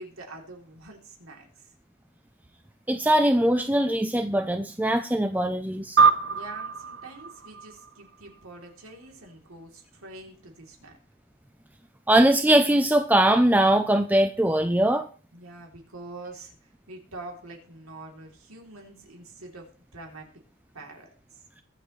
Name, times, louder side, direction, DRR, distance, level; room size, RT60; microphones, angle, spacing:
voice 1, 0.0-1.7 6.3-11.0 15.3-19.7 19.9-20.3 20.7-21.4, right 2 dB, 85° right, 1 dB, 3.2 m, -45 dB
voice 2, 2.9-6.0 12.1-15.1, right 1 dB, 10° right, 8 dB, 0.5 m, -21 dB
sound 1, 6.0-8.7, right 5 dB, 55° right, 0.9 m, -24 dB
22.5 x 7.7 x 3.2 m, 0.41 s
head